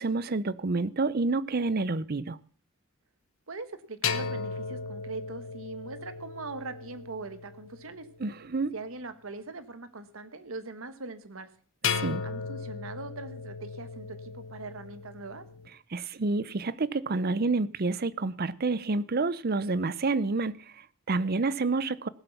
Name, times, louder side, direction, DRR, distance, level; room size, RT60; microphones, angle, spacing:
voice 1, 0.0-2.4 8.2-8.7 12.0-12.2 15.9-22.1, right 3 dB, 50° right, 0.6 m, -29 dB
voice 2, 3.5-8.1 8.7-11.5 12.2-15.5, right 3 dB, 85° right, 1.3 m, -41 dB
sound 1, 4.0-8.3 11.8-15.7, left 6 dB, 70° left, 0.9 m, -36 dB
18.0 x 8.1 x 5.8 m
head